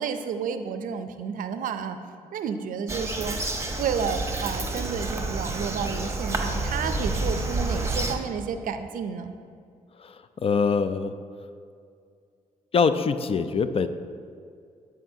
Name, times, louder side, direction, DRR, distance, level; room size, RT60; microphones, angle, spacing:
voice 1, 0.0-2.0 2.3-3.4 3.8-9.3, right 6 dB, 75° right, 9 dB, 0.5 m, -31 dB
Bird vocalization bird call bird song, 2.9-8.2, right 2 dB, 20° right, 0.8 m, -29 dB
voice 2, 10.0-11.1 12.7-13.9, left 5 dB, 45° left, 11 dB, 0.4 m, -24 dB
10.5 x 4.9 x 2.7 m, 2.3 s
cardioid pair, 65°, 14 cm